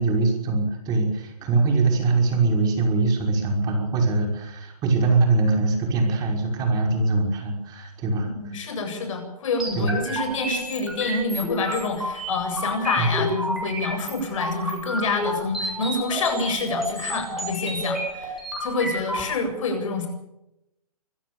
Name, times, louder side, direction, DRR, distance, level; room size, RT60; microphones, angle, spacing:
voice 1, 0.0-8.7 9.8-10.0 13.0-13.1, right 3 dB, 20° right, 2 dB, 5.7 m, -22 dB
voice 2, 8.4-20.1, left 3 dB, 55° left, 6 dB, 7.9 m, -27 dB
sound 1, 9.6-19.2, right 1 dB, ahead, 7.8 m, -31 dB
25.5 x 16.5 x 7.1 m, 0.87 s
hypercardioid pair, 145°, 20 cm